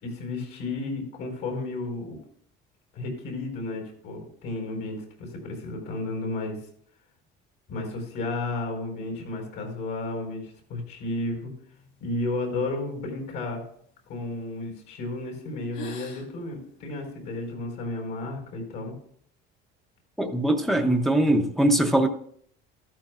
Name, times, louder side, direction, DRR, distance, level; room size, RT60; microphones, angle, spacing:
voice 1, 0.0-2.2 2.9-6.6 7.7-11.5 12.0-13.6 14.1-18.9, left 2 dB, 70° left, 2 dB, 4.4 m, -33 dB
sound 1, 11.8-14.4 15.0-15.3 15.6-17.5, left 1 dB, 50° left, 2.6 m, -47 dB
voice 2, 20.2-22.1, right 1 dB, ahead, 3 dB, 0.5 m, -22 dB
14.0 x 13.0 x 2.4 m, 0.63 s
cardioid pair, 180°, 20 cm